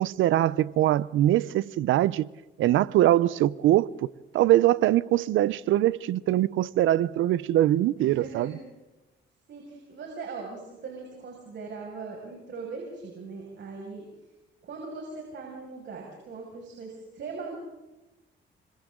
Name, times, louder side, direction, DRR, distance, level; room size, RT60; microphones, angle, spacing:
voice 1, 0.0-2.3 2.6-4.1 4.3-8.5, right 13 dB, 80° right, 0.7 m, -22 dB
voice 2, 8.0-8.6 9.5-14.0 14.6-17.6, right 4 dB, 65° right, 6.2 m, -40 dB
29.5 x 25.5 x 3.8 m
cardioid pair, 90°, 20 cm